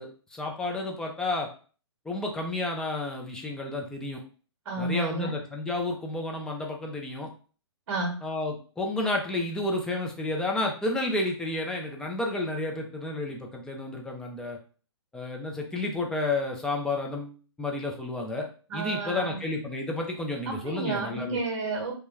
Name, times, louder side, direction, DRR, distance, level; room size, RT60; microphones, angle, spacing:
voice 1, 0.0-1.5 2.1-4.2 4.8-7.3 8.2-14.6 15.1-18.5 18.7-21.4, left 2 dB, 5° left, 0 dB, 0.3 m, -31 dB
voice 2, 4.6-5.4 7.9-8.2 18.7-19.4 20.4-21.9, right 2 dB, 60° right, 1 dB, 0.8 m, -31 dB
2.2 x 2.1 x 3.1 m, 0.39 s
hypercardioid pair, 135°, 15 cm